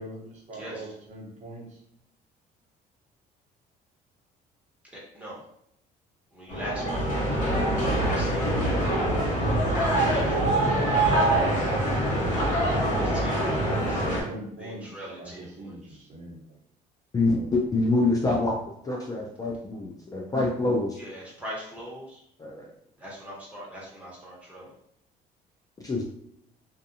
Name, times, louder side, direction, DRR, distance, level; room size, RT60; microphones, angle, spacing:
voice 1, 0.0-1.6 13.3-14.9 15.2-15.3 15.6-16.4, right 1 dB, 40° right, -2 dB, 0.9 m, -41 dB
voice 2, 0.5-0.9 4.9-5.4 6.3-8.7 9.4-10.5 10.8-11.7 12.7-14.0 14.6-16.0 21.0-22.2 23.0-24.7, equal, 10° right, -6 dB, 1.2 m, -41 dB
sound 1, 6.5-14.2, right 1 dB, 50° left, 1.2 m, -24 dB
voice 3, 17.1-18.6 18.8-21.0 22.4-22.7 25.8-26.0, left 2 dB, 20° left, -2 dB, 0.4 m, -26 dB
2.5 x 2.4 x 2.6 m, 0.72 s
cardioid pair, 110°, 17 cm